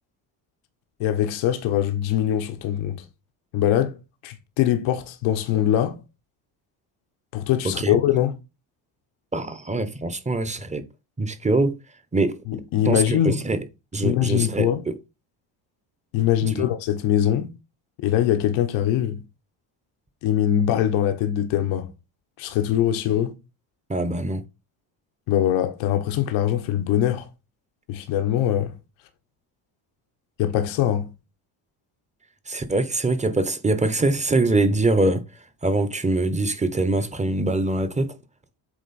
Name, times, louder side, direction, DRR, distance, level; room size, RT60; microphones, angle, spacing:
voice 1, 1.0-3.0 3.5-4.0 4.2-6.0 7.3-8.3 12.5-13.4 14.0-14.8 16.1-17.5 18.0-19.2 20.2-21.9 22.4-23.3 25.3-27.3 27.9-28.7 30.4-31.1, left 11 dB, 75° left, 1.2 m, -22 dB
voice 2, 9.3-10.8 11.2-11.8 12.1-12.4 12.9-13.6 13.9-14.9 16.4-16.6 23.9-24.4 32.5-35.2 35.6-38.1, right 2 dB, 15° right, 1.0 m, -23 dB
8.1 x 3.1 x 4.3 m
supercardioid pair, 85°, 47 cm